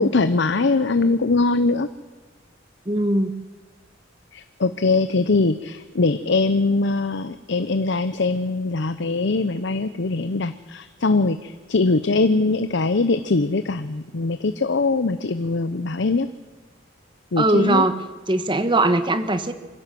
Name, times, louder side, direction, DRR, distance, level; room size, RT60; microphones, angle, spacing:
voice 1, 0.0-1.9 4.3-16.3 17.3-17.8, left 3 dB, 65° left, 11 dB, 0.7 m, -22 dB
voice 2, 2.8-3.3 17.4-18.0 18.3-19.5, right 2 dB, 25° right, 10 dB, 1.3 m, -20 dB
24.5 x 16.0 x 7.6 m, 1.3 s
head